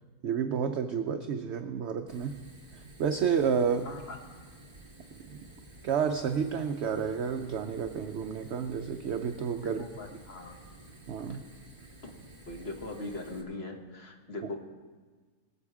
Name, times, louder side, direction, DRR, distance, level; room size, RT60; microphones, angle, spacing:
voice 1, 0.2-2.4 2.7-3.9 5.2-5.4 5.8-9.8 11.1-11.4, right 7 dB, 65° right, 6 dB, 0.7 m, -30 dB
Fire, 2.1-13.4, right 2 dB, 15° right, 1.7 m, -52 dB
voice 2, 3.8-4.2 9.6-10.6 12.0-12.1 12.5-14.6, left 2 dB, 40° left, 2 dB, 1.6 m, -40 dB
20.0 x 7.5 x 4.9 m, 1.4 s
omnidirectional pair, 1.7 m